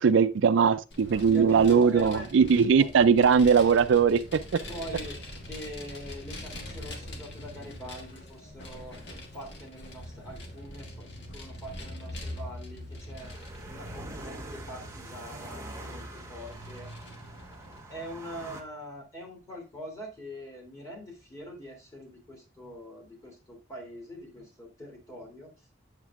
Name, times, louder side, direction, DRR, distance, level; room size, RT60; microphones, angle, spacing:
voice 1, 0.0-4.2, right 6 dB, 70° right, 0.4 m, -20 dB
Vehicle, 0.9-17.8, left 1 dB, 65° left, 1.5 m, -43 dB
voice 2, 1.3-2.3 2.8-2.9 4.7-9.0 9.3-13.3 13.7-16.9 17.9-25.5, equal, 15° left, 2.8 m, -43 dB
sound 1, 13.2-18.6, right 1 dB, 15° right, 1.1 m, -43 dB
8.0 x 7.4 x 2.4 m
head